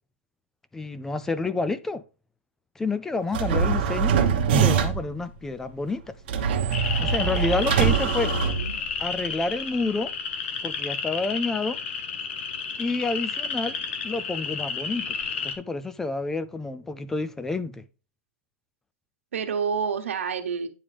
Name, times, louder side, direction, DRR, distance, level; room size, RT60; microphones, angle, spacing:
voice 1, 0.7-2.0 2.8-4.2 4.5-6.0 7.0-8.3 9.0-10.1 10.6-11.8 12.8-13.8 14.0-15.2 15.4-17.8, left 3 dB, 5° left, 0.3 m, -29 dB
sound 1, 3.3-5.2 6.3-9.1, right 7 dB, 45° right, 1.1 m, -23 dB
sound 2, 6.7-15.6, left 6 dB, 65° left, 1.3 m, -32 dB
voice 2, 7.5-8.8 19.3-20.7, right 6 dB, 90° right, 1.3 m, -30 dB
9.6 x 3.7 x 3.4 m
hypercardioid pair, 165°, 7 cm